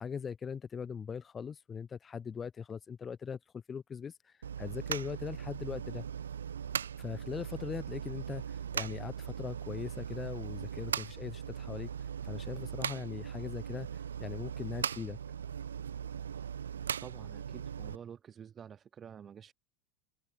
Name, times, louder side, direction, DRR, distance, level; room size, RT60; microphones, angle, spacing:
voice 1, 0.0-4.3 4.6-6.0 7.0-11.9 12.2-13.9 14.2-15.2, left 6 dB, 30° left, 2.6 m, -40 dB
sound 1, 4.4-18.0, right 8 dB, 90° right, 2.2 m, -39 dB
voice 2, 17.0-19.5, right 8 dB, 35° right, 5.8 m, -49 dB
hypercardioid pair, 85°, 0 cm